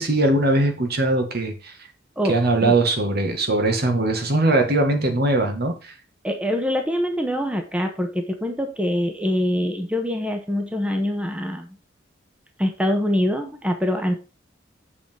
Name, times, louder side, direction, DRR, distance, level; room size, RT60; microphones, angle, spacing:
voice 1, 0.0-1.7 2.2-5.9, right 2 dB, 55° right, 5 dB, 2.0 m, -21 dB
voice 2, 2.2-2.7 6.2-11.7 12.6-14.1, equal, 5° right, 4 dB, 1.2 m, -24 dB
7.3 x 7.0 x 4.6 m, 0.30 s
head